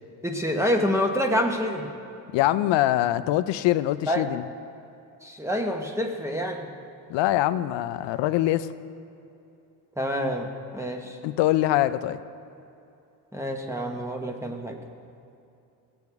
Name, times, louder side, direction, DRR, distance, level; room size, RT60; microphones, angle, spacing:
voice 1, 0.2-1.9 4.1-4.3 5.2-6.7 10.0-11.2 13.3-14.8, equal, 5° right, 3 dB, 1.3 m, -27 dB
voice 2, 2.3-4.4 7.1-8.7 11.2-12.2, left 14 dB, 80° left, 13 dB, 0.6 m, -23 dB
17.5 x 8.0 x 3.5 m, 2.7 s
cardioid pair, 80°, 43 cm